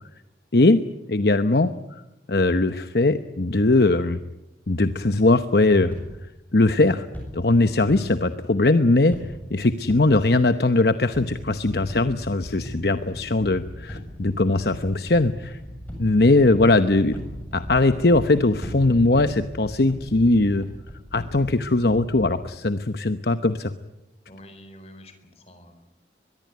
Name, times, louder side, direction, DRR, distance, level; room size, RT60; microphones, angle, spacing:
voice 1, 1.1-1.7 2.3-4.2 4.7-5.9 6.5-7.1 7.3-9.1 9.5-15.6 16.0-17.2 17.5-20.7 21.1-23.7, left 2 dB, 60° left, 10 dB, 0.9 m, -20 dB
sound 1, 5.1-6.0 7.1-8.0 9.1-9.6 9.9-10.0 11.1-22.3, equal, 10° left, 7.6 m, -38 dB
voice 2, 24.3-25.9, left 1 dB, 35° left, 9 dB, 4.3 m, -47 dB
23.5 x 21.5 x 9.5 m, 0.94 s
head